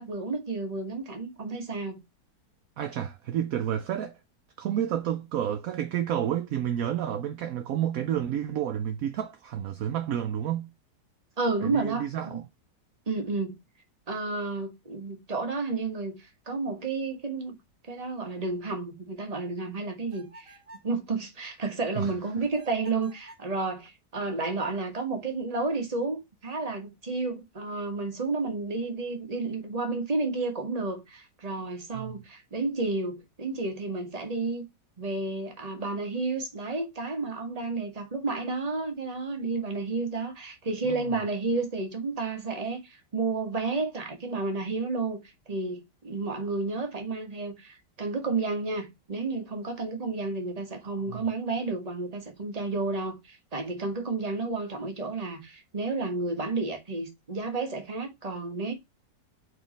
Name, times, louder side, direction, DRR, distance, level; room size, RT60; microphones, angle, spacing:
voice 1, 0.0-2.0 11.4-12.4 13.1-13.6 14.1-17.6 17.9-20.6 20.8-34.6 35.0-45.2 45.5-58.7, right 3 dB, 25° right, 1.3 m, -31 dB
voice 2, 2.8-4.2 4.6-10.7 11.6-12.4 22.0-22.1 31.9-32.2 40.8-41.1 50.8-51.2, right 10 dB, 65° right, 0.9 m, -30 dB
sound 1, 20.1-20.9 22.5-23.5, right 1 dB, 50° right, 1.8 m, -52 dB
4.6 x 4.0 x 5.1 m
omnidirectional pair, 1.9 m